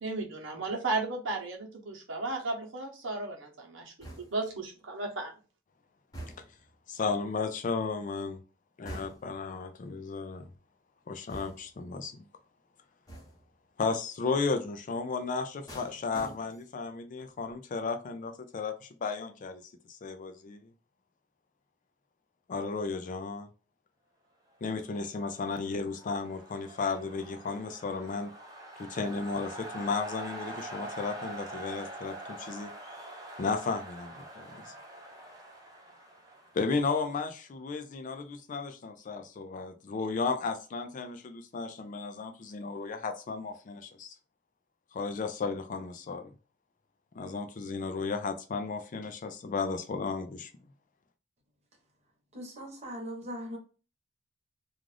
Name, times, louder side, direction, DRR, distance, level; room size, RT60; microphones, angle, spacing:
voice 1, 0.0-5.3, right 2 dB, 70° right, 1 dB, 0.9 m, -35 dB
sound 1, 4.0-4.6 6.1-6.7 8.9-9.5 11.3-11.9 13.1-13.5 15.7-16.8 17.2-17.5, right 1 dB, 20° left, 0.8 m, -46 dB
voice 2, 6.9-8.4 8.8-10.5 11.1-12.3 13.8-19.6 19.9-20.7 22.5-23.5 24.6-28.3 28.8-32.7 33.4-34.7 36.5-44.1 44.9-46.3 47.1-50.5, left 4 dB, 40° left, 7 dB, 0.4 m, -34 dB
sound 2, 25.2-37.1, right 1 dB, 20° right, 0.6 m, -45 dB
voice 3, 52.3-53.6, equal, 35° right, 0 dB, 1.0 m, -40 dB
2.5 x 2.4 x 3.2 m, 0.35 s
head